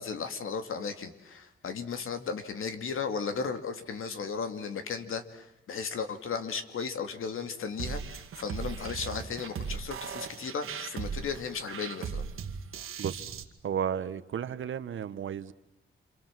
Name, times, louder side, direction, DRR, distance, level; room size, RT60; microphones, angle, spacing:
voice 1, 0.0-12.3, left 5 dB, 80° left, 8 dB, 2.6 m, -35 dB
sound 1, 7.8-13.4, right 6 dB, 90° right, 2.0 m, -38 dB
voice 2, 13.6-15.5, right 8 dB, 70° right, 13 dB, 1.2 m, -33 dB
28.0 x 27.0 x 7.6 m, 0.82 s
wide cardioid pair, 160°, 21 cm